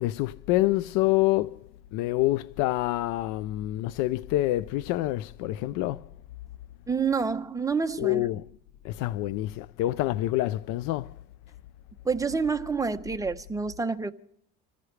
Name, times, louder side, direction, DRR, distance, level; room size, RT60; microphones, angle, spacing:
voice 1, 0.0-1.6 1.9-6.1 8.0-8.5 8.8-11.1, left 16 dB, 65° left, 0.5 m, -27 dB
voice 2, 6.9-8.3 12.0-14.1, right 5 dB, 10° right, 0.8 m, -28 dB
26.5 x 15.0 x 3.3 m
supercardioid pair, 115°, 33 cm